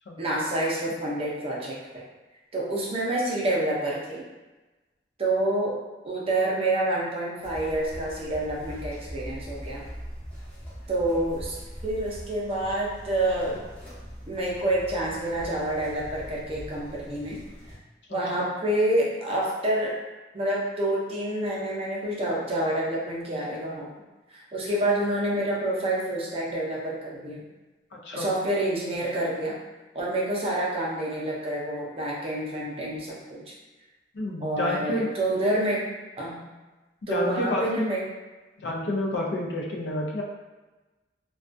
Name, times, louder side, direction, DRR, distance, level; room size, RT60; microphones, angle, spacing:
voice 1, 0.2-2.0 2.5-4.2 5.2-5.8 6.0-9.9 10.9-11.6 11.8-13.6 14.3-17.4 18.1-20.0 20.3-23.9 24.3-27.4 28.1-29.6 29.9-33.4 34.4-35.9 36.2-36.4 37.1-38.0, right 1 dB, 30° right, -4 dB, 0.5 m, -28 dB
sound 1, 7.4-17.8, equal, 10° left, 0.6 m, -41 dB
voice 2, 34.1-35.1 37.1-37.9 38.6-40.2, left 1 dB, 70° left, -1 dB, 0.4 m, -29 dB
2.3 x 2.2 x 2.5 m, 1.2 s
head